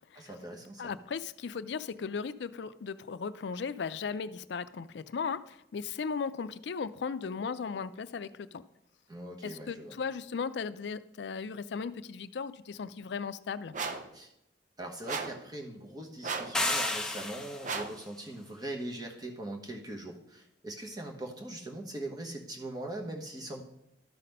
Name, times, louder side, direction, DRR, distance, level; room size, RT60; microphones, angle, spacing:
voice 1, 0.1-0.9 9.1-10.0 14.1-14.3 14.8-23.6, right 1 dB, 25° right, 1 dB, 1.2 m, -41 dB
voice 2, 0.8-8.6 9.4-13.7, left 5 dB, 70° left, 14 dB, 0.4 m, -37 dB
sound 1, 13.7-14.1 15.1-15.5 16.2-16.6 17.6-18.0, right 4 dB, 45° right, 0.7 m, -35 dB
sound 2, 16.5-17.8, left 2 dB, 5° left, 0.6 m, -31 dB
12.0 x 4.2 x 5.4 m, 0.80 s
head